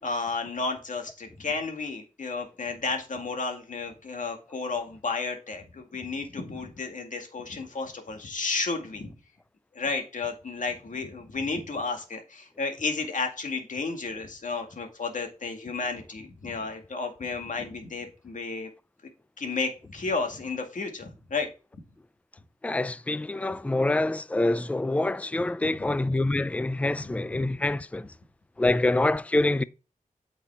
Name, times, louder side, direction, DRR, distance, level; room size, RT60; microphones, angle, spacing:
voice 1, 0.0-9.1 9.7-18.7 19.4-21.5 25.6-25.9 27.0-27.1, left 4 dB, 65° left, 2.2 m, -32 dB
voice 2, 22.6-28.1 28.6-29.6, left 2 dB, 10° left, 0.4 m, -26 dB
8.3 x 5.5 x 3.6 m
wide cardioid pair, 75°, 14 cm